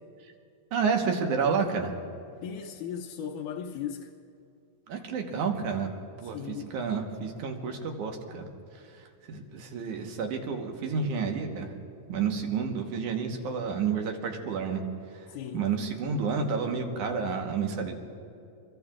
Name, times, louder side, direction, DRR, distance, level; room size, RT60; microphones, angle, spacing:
voice 1, 0.7-1.9 4.9-8.5 8.7-11.7 12.1-18.0, right 5 dB, 75° right, 3 dB, 2.6 m, -30 dB
voice 2, 2.4-4.1 6.3-6.7 15.3-15.7, left 8 dB, 80° left, -1 dB, 2.2 m, -37 dB
26.0 x 22.0 x 2.4 m, 2.5 s
omnidirectional pair, 3.6 m